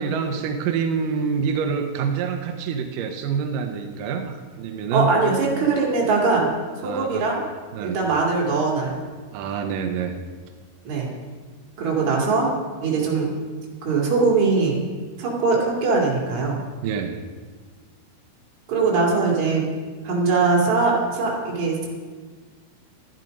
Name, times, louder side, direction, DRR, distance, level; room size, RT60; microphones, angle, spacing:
voice 1, 0.0-5.1 6.8-7.3 7.7-8.0 9.3-10.1 16.8-17.2, right 6 dB, 85° right, 5 dB, 1.9 m, -26 dB
voice 2, 4.9-6.5 6.8-7.4 7.8-9.0 10.8-11.1 11.8-12.5 12.8-13.3 13.8-14.8 15.2-16.6 18.7-19.6 20.0-21.9, right 4 dB, 45° right, -2 dB, 3.4 m, -21 dB
12.5 x 10.5 x 5.3 m, 1.5 s
omnidirectional pair, 5.0 m